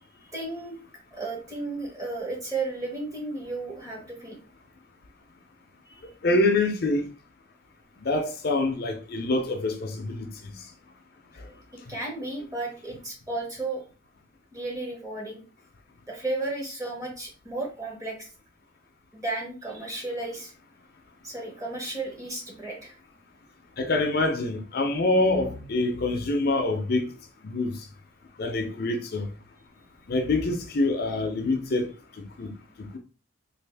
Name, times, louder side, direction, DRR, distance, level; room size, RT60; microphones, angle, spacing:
voice 1, 0.1-0.8 1.1-4.4 5.9-6.0 11.7-13.8 14.5-15.4 16.1-18.3 19.1-20.5 21.2-22.9, right 2 dB, 15° right, 0.9 m, -34 dB
voice 2, 6.2-7.1 8.0-10.7 11.4-11.5 23.8-27.1 27.4-27.8 28.4-29.3 30.1-31.9 32.4-32.5, left 2 dB, 50° left, 0.5 m, -25 dB
3.3 x 2.4 x 3.3 m
head